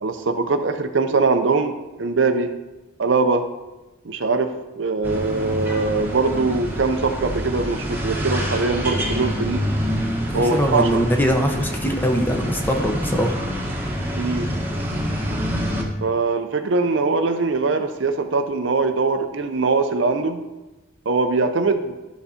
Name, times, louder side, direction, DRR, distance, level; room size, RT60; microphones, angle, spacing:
voice 1, 0.0-2.5 3.0-3.4 4.0-4.5 4.8-9.6 10.3-11.0 14.2-14.5 16.0-20.4 21.1-22.0, right 3 dB, 60° right, 8 dB, 0.6 m, -22 dB
sound 1, 5.0-15.8, equal, 10° right, 1.1 m, -26 dB
voice 2, 10.3-13.4, equal, 10° left, 3 dB, 0.8 m, -22 dB
12.0 x 4.1 x 4.3 m, 1.1 s
head